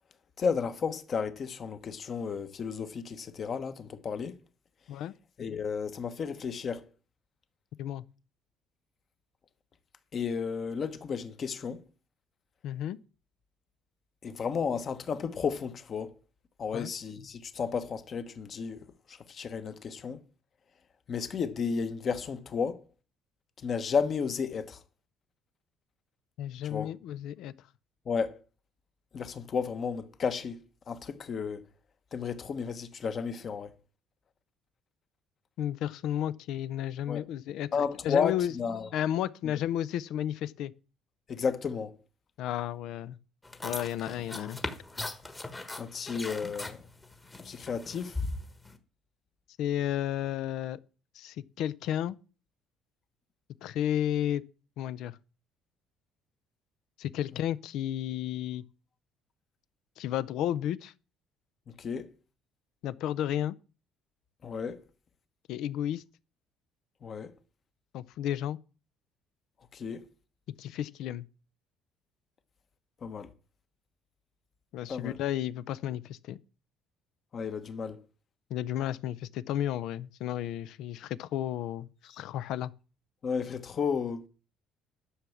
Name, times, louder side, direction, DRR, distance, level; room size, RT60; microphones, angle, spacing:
voice 1, 0.4-4.4 5.4-6.8 10.1-11.8 14.2-16.1 16.6-18.8 19.1-20.2 21.1-22.8 23.6-24.8 26.6-26.9 28.1-28.4 29.1-30.6 30.9-31.6 32.1-33.7 37.1-37.2 37.7-38.9 41.3-41.9 45.8-46.8 47.4-48.2 61.8-62.1 64.4-64.8 67.0-67.3 69.7-70.0 73.0-73.3 74.9-75.1 77.3-78.0 83.2-84.2, left 6 dB, 35° left, 1.1 m, -33 dB
voice 2, 12.6-13.0 16.7-16.9 26.4-27.5 35.6-37.7 38.0-38.5 38.9-40.7 42.4-43.2 43.6-44.6 49.6-50.8 51.1-52.2 53.6-54.4 54.8-55.2 57.0-58.6 60.0-60.9 62.8-63.5 65.5-66.0 67.9-68.6 70.6-71.3 74.7-76.4 78.5-82.7, left 11 dB, 70° left, 0.6 m, -32 dB
sound 1, 43.4-48.8, left 2 dB, 15° left, 1.3 m, -39 dB
11.5 x 6.3 x 7.1 m
cardioid pair, 150°, 0 cm